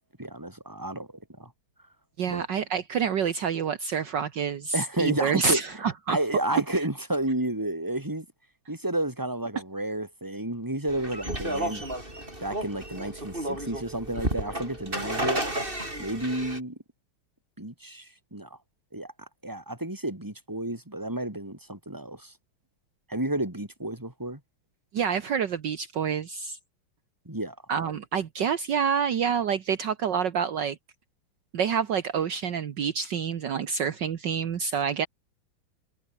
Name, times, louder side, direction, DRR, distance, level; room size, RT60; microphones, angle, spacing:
voice 1, 0.2-1.1 1.4-1.5 2.3-2.5 4.7-5.6 6.1-8.3 8.7-11.8 12.4-15.4 16.0-16.8 17.6-18.5 18.9-19.1 19.4-22.3 23.1-24.4 27.3-27.6, right 1 dB, 10° right, 3.9 m, -31 dB
voice 2, 2.2-6.2 6.7-6.9 24.9-26.6 27.7-30.8 31.5-35.1, right 6 dB, 60° right, 1.8 m, -27 dB
sound 1, 10.9-16.6, right 1 dB, 25° right, 7.5 m, -32 dB
omnidirectional pair, 2.2 m